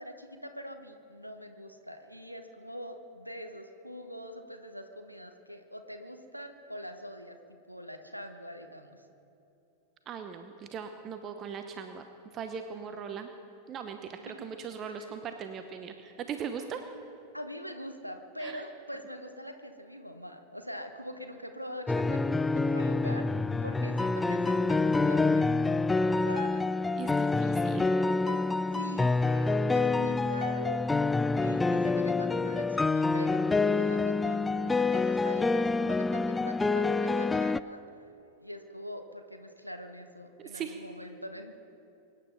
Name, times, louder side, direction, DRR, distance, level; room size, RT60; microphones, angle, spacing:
voice 1, 0.0-7.4 7.7-9.0 14.2-14.6 15.0-15.2 17.3-23.2 23.6-25.5 26.1-26.7 28.3-30.8 31.3-37.8 38.4-41.6, equal, 90° right, 6 dB, 1.0 m, -43 dB
voice 2, 10.1-12.0 12.3-13.3 13.7-16.8 18.4-18.6 27.0-27.9 40.4-40.8, right 7 dB, 30° right, 7 dB, 0.9 m, -39 dB
sound 1, 21.9-37.6, left 3 dB, 10° left, 0.4 m, -27 dB
24.0 x 9.9 x 5.8 m, 2.8 s
figure-of-eight pair, 90°, 0 cm